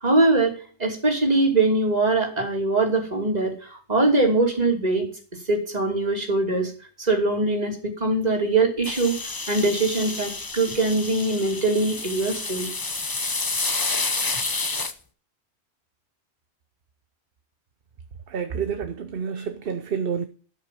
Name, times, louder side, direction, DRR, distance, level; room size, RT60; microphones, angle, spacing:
voice 1, 0.0-5.1 5.5-6.7 7.0-9.2 9.5-12.7, right 2 dB, 40° right, 3.0 m, -22 dB
sound 1, 8.8-14.9, left 3 dB, 20° left, 0.8 m, -29 dB
voice 2, 18.3-20.3, right 6 dB, 65° right, 0.9 m, -29 dB
13.0 x 5.8 x 7.5 m
omnidirectional pair, 1.1 m